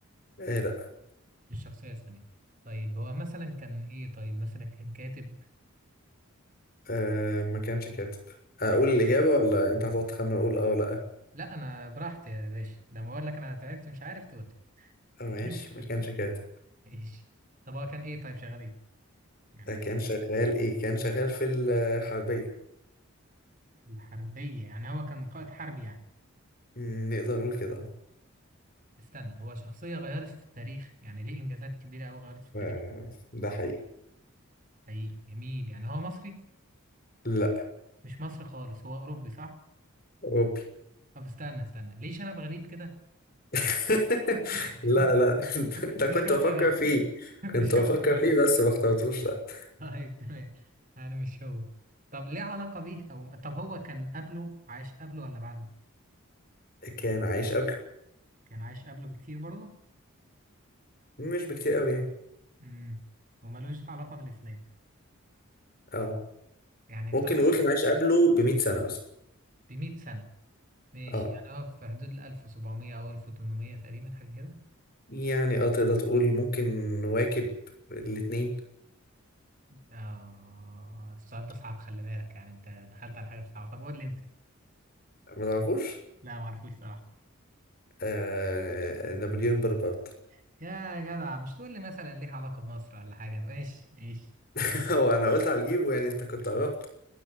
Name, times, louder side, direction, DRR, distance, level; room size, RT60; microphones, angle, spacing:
voice 1, 0.4-0.7 6.9-8.1 8.6-11.0 15.2-15.6 15.9-16.4 19.7-22.5 26.8-27.9 32.5-33.8 37.2-37.6 40.2-40.6 43.5-49.7 56.8-57.8 61.2-62.1 65.9-66.2 67.1-69.0 71.1-71.3 75.1-77.5 77.9-78.5 85.3-86.0 88.0-90.0 94.5-96.7, equal, 40° left, 6 dB, 6.7 m, -27 dB
voice 2, 1.5-2.2 2.6-5.4 9.0-9.2 11.3-14.5 14.8-14.9 15.2-15.9 16.8-17.2 17.7-18.7 19.5-19.8 23.9-26.0 29.0-32.7 34.9-36.4 38.0-39.5 41.1-42.9 44.3-45.1 45.8-46.7 47.4-48.2 49.8-50.5 51.0-51.7 52.1-55.7 58.5-59.7 62.6-63.0 63.4-64.6 66.9-67.2 69.7-70.3 70.9-74.5 79.7-84.2 86.2-87.0 90.6-94.3, equal, 40° right, 7 dB, 4.4 m, -39 dB
20.0 x 17.0 x 9.8 m, 0.77 s
head